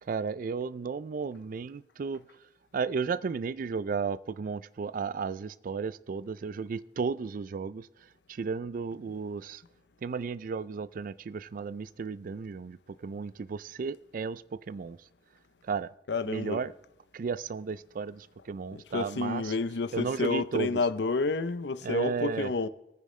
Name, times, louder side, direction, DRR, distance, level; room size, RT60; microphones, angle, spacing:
voice 1, 0.0-2.2 2.7-7.9 8.3-9.6 10.0-15.0 15.6-15.9 16.3-16.7 17.1-19.5 19.9-20.8 21.8-22.5, right 5 dB, 50° right, 0.4 m, -34 dB
voice 2, 16.1-16.6 18.7-22.7, left 3 dB, 75° left, 0.6 m, -30 dB
24.5 x 9.1 x 3.2 m
head